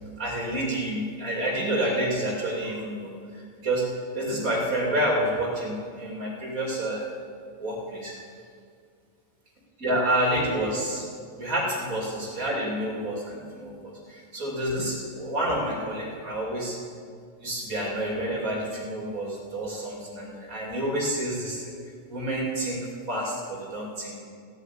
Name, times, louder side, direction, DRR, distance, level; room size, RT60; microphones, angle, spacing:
voice 1, 0.2-7.1 7.6-8.2 9.8-11.0 11.4-16.8 17.4-21.7 22.1-24.2, right 1 dB, 80° right, -2 dB, 3.4 m, -29 dB
15.5 x 8.3 x 8.5 m, 2.2 s
omnidirectional pair, 1.4 m